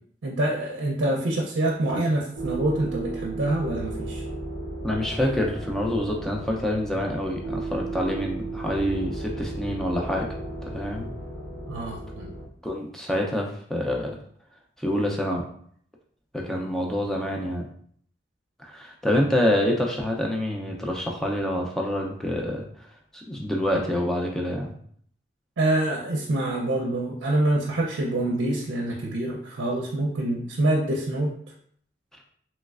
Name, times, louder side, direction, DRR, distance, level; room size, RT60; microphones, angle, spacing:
voice 1, 0.2-4.2 11.7-12.3 25.6-31.3, right 1 dB, 80° right, -2 dB, 0.5 m, -26 dB
sound 1, 2.3-12.4, right 2 dB, 85° left, 0.8 m, -34 dB
voice 2, 4.8-10.3 10.6-11.1 12.6-14.2 14.8-15.4 16.3-17.7 18.6-22.7 23.1-24.7, left 1 dB, 5° left, -1 dB, 0.4 m, -26 dB
3.1 x 3.0 x 2.3 m, 0.62 s
head